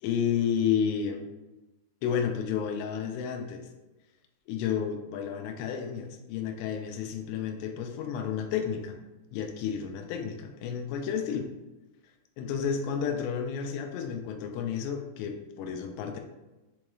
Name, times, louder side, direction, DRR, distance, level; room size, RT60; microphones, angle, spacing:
voice 1, 0.0-1.2 2.0-3.7 4.5-9.0 9.3-11.5 12.4-16.2, left 7 dB, 90° left, 3 dB, 2.8 m, -31 dB
7.3 x 3.0 x 2.3 m, 1.1 s
omnidirectional pair, 4.8 m